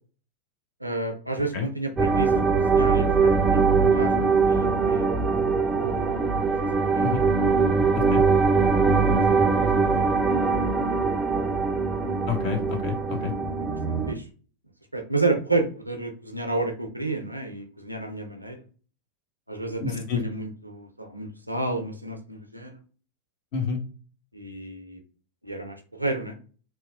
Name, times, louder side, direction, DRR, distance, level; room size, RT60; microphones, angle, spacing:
voice 1, 0.8-5.1 5.4-6.2 6.5-7.1 8.3-8.8 9.2-10.1 11.9-12.2 13.7-14.2 14.9-18.6 19.5-22.8 24.3-25.0 25.4-26.3, right 2 dB, 85° right, 5 dB, 0.4 m, -31 dB
sound 1, 2.0-14.1, right 4 dB, 15° right, 0.4 m, -22 dB
voice 2, 12.3-13.3 19.8-20.2 23.5-23.8, left 6 dB, 45° left, 3 dB, 0.8 m, -29 dB
2.9 x 2.2 x 2.3 m, 0.40 s
figure-of-eight pair, 90°, 0 cm